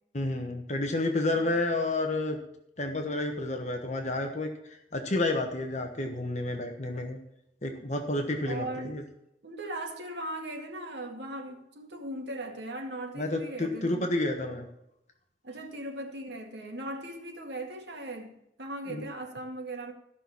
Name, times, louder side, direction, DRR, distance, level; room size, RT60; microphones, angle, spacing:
voice 1, 0.1-2.4 2.8-4.5 4.9-7.2 7.6-9.0 13.2-14.6 18.9-19.0, left 2 dB, 40° left, 1.2 m, -30 dB
voice 2, 8.4-9.0 9.4-14.1 15.4-18.3 18.6-19.9, right 1 dB, 75° right, 2.1 m, -38 dB
14.5 x 6.1 x 7.0 m
head